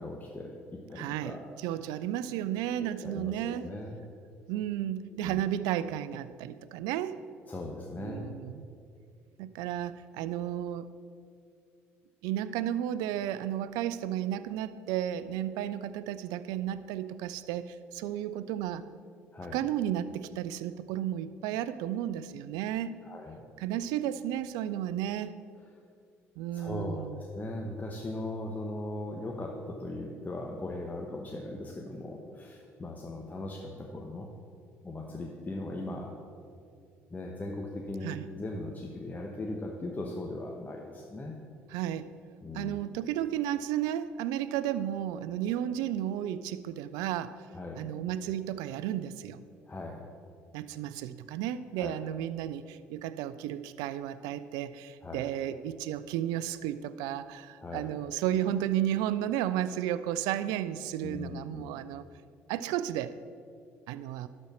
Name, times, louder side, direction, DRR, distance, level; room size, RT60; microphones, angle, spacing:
voice 1, 0.0-1.5 2.8-4.0 5.2-5.4 7.5-8.3 19.3-19.6 23.0-23.4 26.5-34.3 34.8-36.1 37.1-41.3 42.4-42.8 47.5-47.9 49.7-50.0 51.8-52.0 55.0-55.3 57.6-57.9 61.0-61.7, left 2 dB, 25° left, -1 dB, 1.1 m, -39 dB
voice 2, 1.0-3.7 4.5-7.2 7.9-8.7 9.4-10.9 12.2-18.8 19.5-23.0 23.6-25.4 26.4-27.2 38.0-38.3 41.7-42.1 42.5-47.3 47.8-49.4 50.5-62.1 62.5-63.1 63.9-64.3, right 11 dB, 70° right, 15 dB, 0.4 m, -33 dB
11.5 x 4.4 x 6.1 m, 2.4 s
hypercardioid pair, 55°, 7 cm